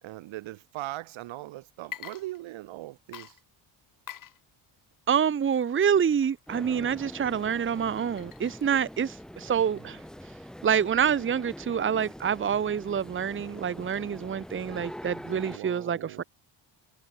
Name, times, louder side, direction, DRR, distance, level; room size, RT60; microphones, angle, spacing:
voice 1, 0.0-3.4 9.6-9.9 15.5-16.2, right 17 dB, 75° right, 5.0 m, -40 dB
Water / Liquid, 1.8-2.8 3.1-11.4, left 10 dB, 40° left, 3.9 m, -49 dB
voice 2, 5.1-10.0 10.6-16.2, right 8 dB, 25° right, 1.4 m, -27 dB
sound 1, 6.5-15.6, equal, ahead, 6.3 m, -44 dB
cardioid pair, 170°, 47 cm